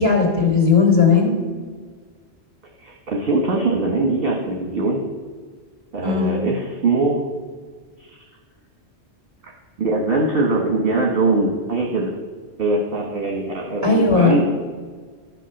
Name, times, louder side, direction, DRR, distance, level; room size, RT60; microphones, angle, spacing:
voice 1, 0.0-1.4 6.0-6.3 13.8-14.4, left 4 dB, 40° right, 1 dB, 3.2 m, -16 dB
voice 2, 2.8-5.1 5.9-7.2 8.0-8.2 9.4-9.5 9.8-12.1 12.6-14.4, right 3 dB, 60° right, 0 dB, 1.5 m, -22 dB
12.5 x 6.1 x 7.1 m, 1.5 s
omnidirectional pair, 1.1 m